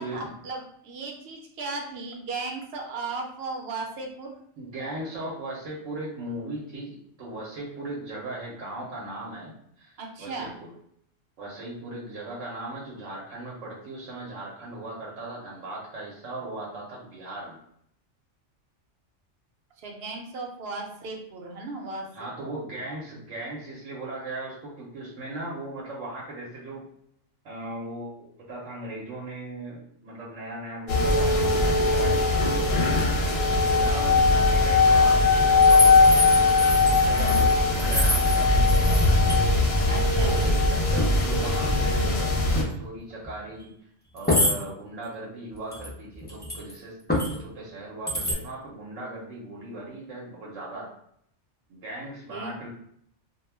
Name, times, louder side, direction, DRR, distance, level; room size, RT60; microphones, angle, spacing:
voice 1, 0.0-4.3 10.0-10.5 19.8-22.1 37.1-37.5 39.9-40.4 52.3-52.5, right 3 dB, 60° right, 1 dB, 0.8 m, -36 dB
voice 2, 4.6-10.7 11.4-17.6 22.1-26.8 27.4-36.4 37.0-39.2 39.8-43.7 44.1-50.9 51.7-52.7, right 2 dB, 85° right, -4 dB, 1.0 m, -38 dB
sound 1, 30.9-42.6, left 3 dB, 65° left, 0.8 m, -20 dB
sound 2, 35.6-39.3 39.6-40.1 40.3-40.6 41.0-41.2 42.5-42.7 43.2-43.3 44.2-44.6 45.7-46.7 47.1-47.4 48.1-48.3, left 1 dB, 15° left, 0.4 m, -27 dB
2.3 x 2.1 x 3.2 m, 0.70 s
omnidirectional pair, 1.2 m